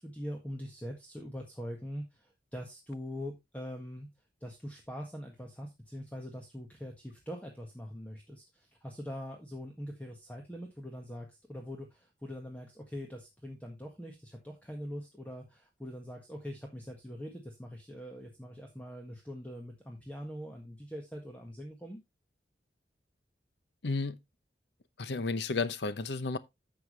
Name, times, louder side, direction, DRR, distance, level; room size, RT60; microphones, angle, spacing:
voice 1, 0.0-4.1 4.4-22.0, equal, 10° left, 1.6 m, -43 dB
voice 2, 23.8-24.2 25.0-26.4, left 3 dB, 75° left, 0.8 m, -32 dB
11.0 x 7.1 x 3.2 m
head